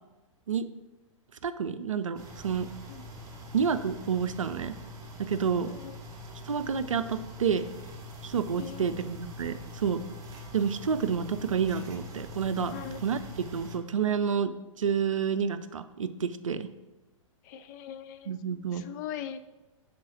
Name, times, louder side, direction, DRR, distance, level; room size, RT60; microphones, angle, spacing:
voice 1, 1.4-2.7 3.5-4.8 5.2-5.7 6.5-7.7 8.2-10.0 10.5-12.7 13.0-13.2 13.5-16.7 18.3-18.9, right 6 dB, 70° right, 12 dB, 0.5 m, -29 dB
sound 1, 2.2-13.8, left 1 dB, 20° right, 1.0 m, -44 dB
voice 2, 5.6-6.0 8.6-9.0 12.7-13.0 17.4-18.3 18.7-19.4, left 9 dB, 35° left, 11 dB, 0.4 m, -40 dB
6.0 x 4.3 x 4.3 m, 1.1 s
figure-of-eight pair, 110°, 17 cm